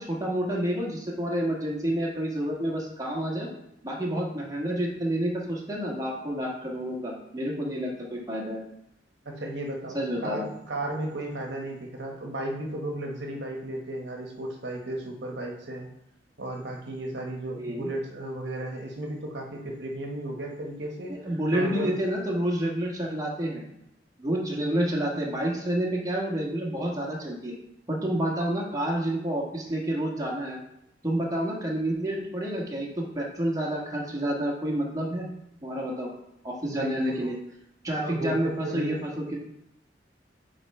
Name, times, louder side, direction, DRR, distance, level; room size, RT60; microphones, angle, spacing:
voice 1, 0.0-3.5 3.8-8.6 9.9-10.5 17.6-17.9 21.1-23.6 24.2-27.5 27.9-30.6 31.0-35.3 35.6-36.1 36.4-37.3 37.8-39.4, right 1 dB, 20° right, -2 dB, 1.4 m, -29 dB
voice 2, 9.2-15.9 16.4-21.9 36.7-37.3 38.0-39.0, right 1 dB, 65° right, 1 dB, 1.0 m, -34 dB
8.4 x 3.3 x 4.2 m, 0.82 s
head